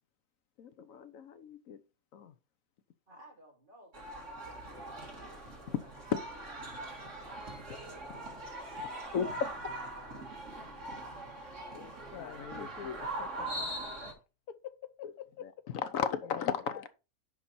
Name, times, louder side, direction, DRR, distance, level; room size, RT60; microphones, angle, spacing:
voice 1, 0.6-1.8 2.1-2.3 5.7-5.8 6.1-6.2 8.8-8.9 9.1-10.2 10.5-10.8 11.7-13.0 15.0-15.1 15.4-16.9, left 7 dB, 65° left, 1.1 m, -36 dB
voice 2, 3.1-5.9 6.2-7.6 8.0-9.0, right 1 dB, 35° right, 3.1 m, -58 dB
sound 1, 3.9-14.1, right 1 dB, 55° right, 2.1 m, -42 dB
voice 3, 12.1-12.9 13.2-13.7 14.5-15.4 16.3-16.8, left 10 dB, 90° left, 1.3 m, -46 dB
10.5 x 4.1 x 4.2 m
omnidirectional pair, 1.5 m